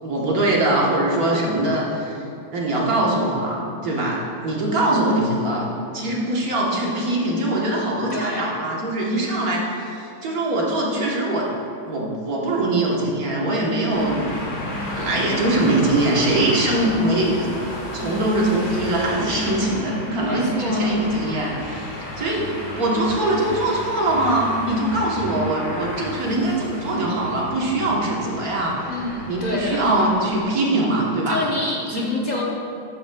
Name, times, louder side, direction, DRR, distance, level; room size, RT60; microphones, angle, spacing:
voice 1, 0.0-2.2 2.5-11.5 11.9-14.2 15.0-17.5 17.9-22.5 22.8-28.9 29.3-31.4 31.9-32.1, right 1 dB, 50° right, -3 dB, 1.4 m, -22 dB
voice 2, 8.1-8.5 20.2-20.9 28.9-29.8 31.3-32.4, left 2 dB, 80° left, -4 dB, 0.4 m, -28 dB
sound 1, 13.9-30.4, left 1 dB, 45° left, 2.6 m, -33 dB
12.0 x 8.4 x 2.2 m, 2.5 s
omnidirectional pair, 2.2 m